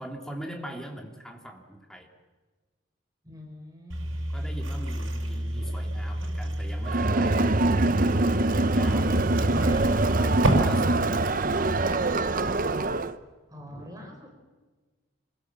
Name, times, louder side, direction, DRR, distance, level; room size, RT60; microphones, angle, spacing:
voice 1, 0.0-2.1 4.3-7.6 8.7-9.3 10.2-12.1, equal, 5° left, 2 dB, 2.8 m, -41 dB
voice 2, 3.2-4.2 9.1-10.3 13.5-14.3, left 1 dB, 20° right, 1 dB, 4.8 m, -44 dB
sound 1, 3.9-10.5, right 1 dB, 85° right, 5.8 m, -30 dB
Crowd, 6.8-13.1, right 2 dB, 45° right, 0.9 m, -24 dB
26.5 x 22.5 x 7.3 m, 1.3 s
head